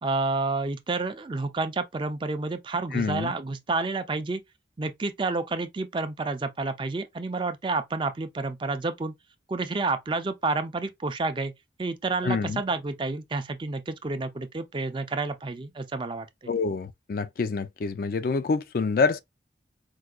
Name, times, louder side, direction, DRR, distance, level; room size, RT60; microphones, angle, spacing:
voice 1, 0.0-4.4 4.8-9.1 9.5-11.5 11.8-16.3, right 3 dB, 25° right, 0.4 m, -29 dB
voice 2, 2.9-3.3 12.2-12.6 16.5-19.2, left 4 dB, 50° left, 0.3 m, -26 dB
4.6 x 2.2 x 2.3 m
head